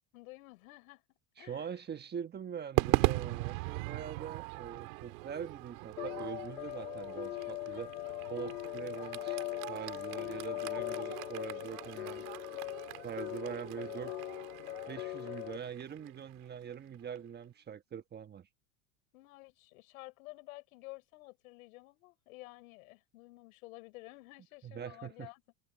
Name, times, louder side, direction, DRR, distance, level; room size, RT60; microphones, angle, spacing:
voice 1, 0.1-1.7 19.1-25.4, left 22 dB, 75° left, 6.2 m, -52 dB
voice 2, 1.4-7.9 8.3-12.2 13.0-14.1 14.9-18.5 24.6-25.3, right 8 dB, 25° right, 1.3 m, -43 dB
Crowd / Fireworks, 2.8-17.2, right 26 dB, 70° right, 3.0 m, -39 dB
sound 1, 6.0-15.6, left 18 dB, 90° left, 2.5 m, -40 dB
supercardioid pair, 125°, 42 cm